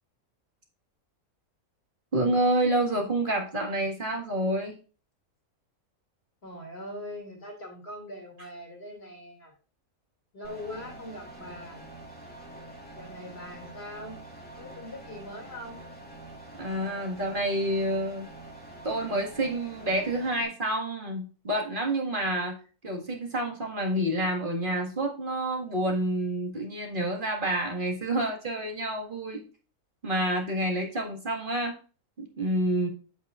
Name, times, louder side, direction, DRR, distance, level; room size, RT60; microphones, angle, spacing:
voice 1, 2.1-4.8 16.6-18.3 18.8-22.6 22.8-29.4 30.0-31.7 32.2-32.9, right 1 dB, 35° right, 0 dB, 2.0 m, -28 dB
voice 2, 6.4-9.5 10.3-11.9 12.9-14.2 14.6-15.9, left 1 dB, 40° left, 1 dB, 2.7 m, -42 dB
sound 1, 10.4-20.4, right 1 dB, 5° left, 1.6 m, -46 dB
8.8 x 7.7 x 2.5 m, 0.36 s
omnidirectional pair, 1.6 m